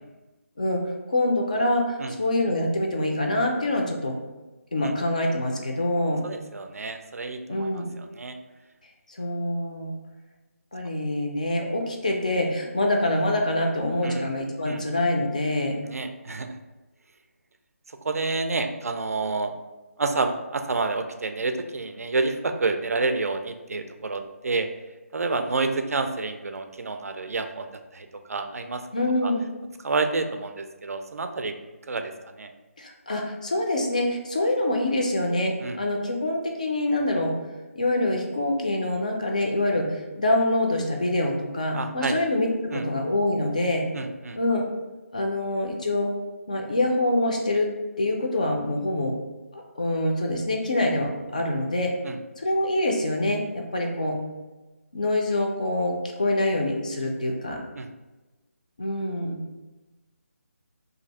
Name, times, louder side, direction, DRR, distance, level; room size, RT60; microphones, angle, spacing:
voice 1, 1.1-4.1 4.7-6.2 7.5-7.9 9.1-9.9 10.7-15.8 28.9-29.5 32.8-37.3 37.8-43.8 44.4-44.7 45.1-46.1 46.5-47.7 48.0-49.1 49.5-51.9 52.4-54.2 54.9-57.6 58.8-59.4, left 1 dB, 30° left, 1 dB, 0.4 m, -25 dB
voice 2, 6.2-8.3 14.0-14.3 14.7-14.8 15.9-16.5 18.0-19.5 20.0-24.7 25.1-28.8 29.2-29.3 29.8-31.5 31.9-32.5 35.6-35.8 41.7-42.2 42.7-42.9 43.9-44.4 52.0-52.2 57.8-57.9, right 3 dB, 75° right, 7 dB, 0.4 m, -29 dB
2.6 x 2.4 x 4.0 m, 1.1 s
hypercardioid pair, 180°, 8 cm